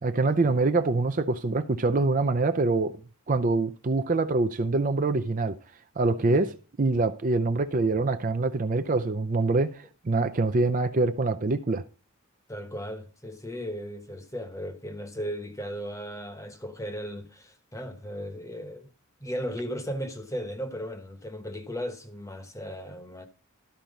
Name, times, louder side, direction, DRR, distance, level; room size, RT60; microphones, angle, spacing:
voice 1, 0.0-3.0 3.3-5.6 6.0-11.8, right 3 dB, 35° right, 0.5 m, -25 dB
voice 2, 12.5-18.9 19.2-23.3, equal, 15° left, 1.0 m, -36 dB
13.0 x 4.4 x 5.2 m
head